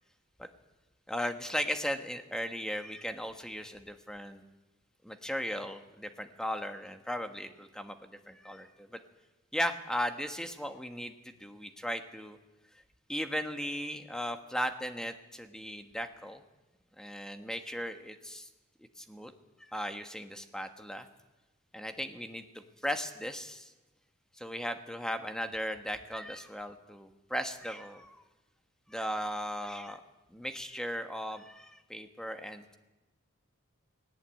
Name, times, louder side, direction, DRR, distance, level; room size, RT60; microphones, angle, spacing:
voice 1, 1.1-4.4 5.0-9.0 9.5-12.4 13.1-16.4 17.0-18.5 19.0-19.3 19.6-21.1 21.7-23.7 24.4-28.2 28.9-30.0 30.3-32.8, equal, 5° left, 7 dB, 1.4 m, -37 dB
20.0 x 18.0 x 9.1 m, 1.1 s
head